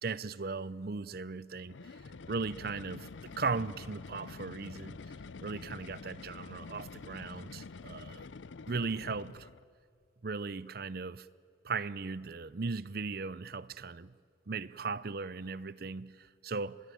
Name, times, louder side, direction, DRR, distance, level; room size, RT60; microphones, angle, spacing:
voice 1, 0.0-1.8 2.3-5.0 5.4-8.3 8.7-9.5 10.2-11.3 11.6-14.1 14.5-16.8, right 4 dB, 50° right, 0.6 m, -37 dB
sound 1, 1.6-9.7, left 4 dB, 75° left, 0.6 m, -47 dB
25.0 x 20.5 x 9.3 m
head